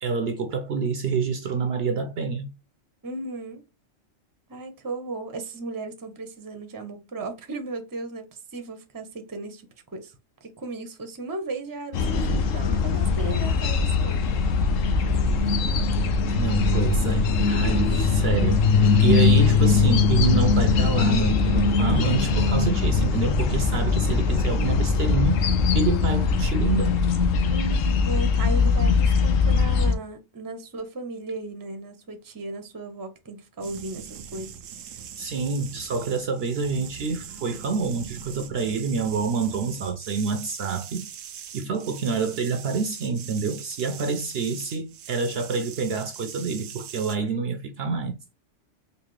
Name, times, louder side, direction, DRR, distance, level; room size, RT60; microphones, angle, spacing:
voice 1, 0.0-2.5 16.4-18.6 19.0-25.4 25.7-27.0 35.2-41.1 41.5-48.2, right 5 dB, 65° right, 0.7 m, -27 dB
voice 2, 3.0-3.6 4.5-10.1 10.4-14.6 27.5-34.5 34.8-35.0, right 3 dB, 20° right, 0.6 m, -36 dB
sound 1, 11.9-29.9, left 4 dB, 85° left, 1.0 m, -21 dB
sound 2, 33.6-47.2, right 8 dB, 90° right, 1.0 m, -41 dB
4.0 x 2.7 x 3.1 m
omnidirectional pair, 1.3 m